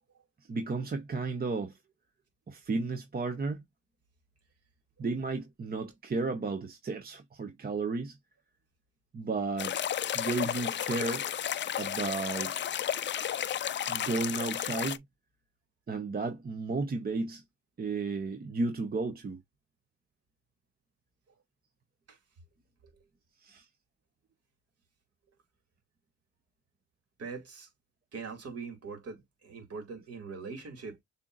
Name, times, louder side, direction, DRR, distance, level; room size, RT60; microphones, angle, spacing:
voice 1, 0.5-1.7 2.5-3.6 5.0-8.2 9.1-9.8 10.1-11.3 11.8-12.5 13.9-15.0 15.9-17.4 17.8-19.4 23.4-23.7, right 3 dB, 30° right, 0.9 m, -33 dB
sound 1, 9.6-15.0, left 10 dB, 40° left, 0.4 m, -33 dB
voice 2, 27.2-27.7 28.1-31.0, right 4 dB, 55° right, 2.4 m, -42 dB
6.9 x 2.8 x 2.5 m
cardioid pair, 90°, 30 cm